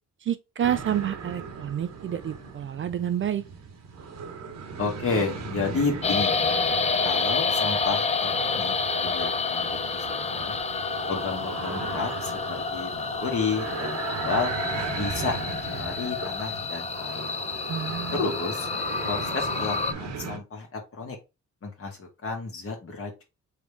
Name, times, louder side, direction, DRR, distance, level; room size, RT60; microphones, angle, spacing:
voice 1, 0.3-3.4 17.7-18.1, right 10 dB, 40° right, 0.4 m, -29 dB
sound 1, 0.6-20.4, right 5 dB, 60° right, 1.2 m, -37 dB
voice 2, 4.8-6.5 7.0-10.6 11.1-14.5 14.9-17.4 18.1-18.7 19.0-21.2 21.6-23.2, left 4 dB, 45° left, 2.0 m, -31 dB
sound 2, 6.0-19.9, left 5 dB, 20° left, 0.4 m, -29 dB
3.7 x 3.5 x 3.6 m
cardioid pair, 90°, 30 cm